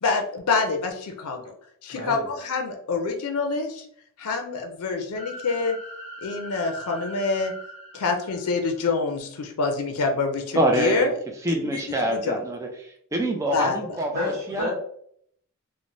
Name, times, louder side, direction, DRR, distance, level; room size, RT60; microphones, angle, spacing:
voice 1, 0.0-1.5 1.8-3.8 4.2-5.8 6.2-7.5 7.9-11.1 11.6-11.8 12.1-12.4 13.5-13.8, left 4 dB, 80° left, 5 dB, 0.5 m, -26 dB
voice 2, 1.9-2.3 13.5-13.7 14.1-14.7, left 1 dB, 90° right, -6 dB, 1.1 m, -30 dB
sound 1, 5.1-8.9, equal, 30° left, 0.8 m, -41 dB
voice 3, 10.5-11.1 11.4-14.7, right 1 dB, 15° right, 2 dB, 0.4 m, -25 dB
3.1 x 2.1 x 2.6 m, 0.66 s
head